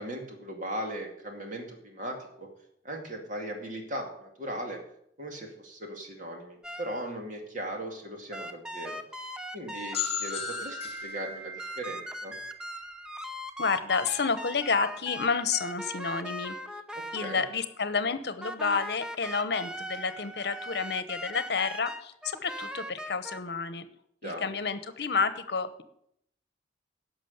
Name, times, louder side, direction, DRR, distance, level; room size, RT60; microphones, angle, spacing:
voice 1, 0.0-2.5 2.8-4.8 5.2-9.0 9.5-12.3 16.9-17.4 24.2-24.5, right 1 dB, 45° right, 2 dB, 2.4 m, -38 dB
sound 1, 6.6-7.2 8.3-11.0 11.6-17.7 18.4-23.4, equal, 5° right, 0.7 m, -40 dB
sound 2, 9.9-13.6, left 6 dB, 35° left, 1.4 m, -37 dB
voice 2, 13.6-16.6 17.1-23.8 24.2-25.8, left 5 dB, 65° left, 12 dB, 0.9 m, -30 dB
11.0 x 6.2 x 8.0 m, 0.72 s
head